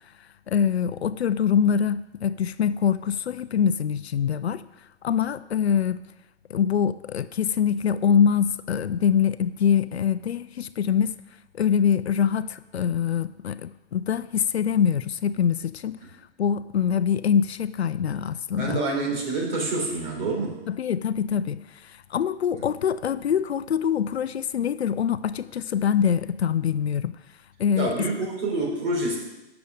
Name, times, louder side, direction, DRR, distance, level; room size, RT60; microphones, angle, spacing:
voice 1, 0.5-4.6 5.0-6.0 6.5-11.2 11.5-16.0 16.4-18.8 20.7-27.2 27.6-28.1, left 8 dB, 65° left, 14 dB, 0.6 m, -24 dB
voice 2, 18.6-20.6 27.8-29.2, right 2 dB, 50° right, -1 dB, 3.8 m, -27 dB
9.0 x 7.0 x 6.5 m, 0.98 s
hypercardioid pair, 170°, 34 cm